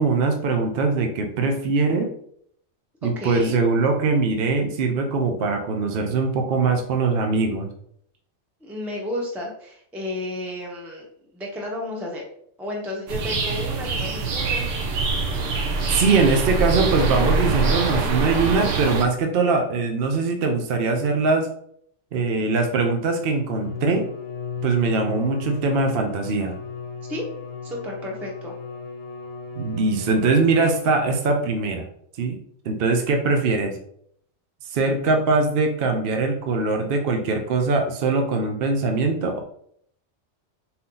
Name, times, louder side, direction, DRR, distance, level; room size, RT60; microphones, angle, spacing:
voice 1, 0.0-2.1 3.0-7.7 15.9-21.5 22.1-24.1 24.6-26.5 29.6-31.9 32.2-32.4 32.6-33.7 34.6-39.4, right 3 dB, 60° right, 4 dB, 0.8 m, -22 dB
voice 2, 3.0-3.6 8.6-11.1 11.3-12.2 12.6-14.7 27.1-27.3 27.6-28.5, left 1 dB, ahead, -2 dB, 0.6 m, -32 dB
sound 1, 13.1-19.0, right 3 dB, 90° right, 1.1 m, -24 dB
Bowed string instrument, 23.3-31.6, left 5 dB, 60° left, 0.9 m, -35 dB
4.2 x 2.7 x 3.7 m, 0.65 s
omnidirectional pair, 1.2 m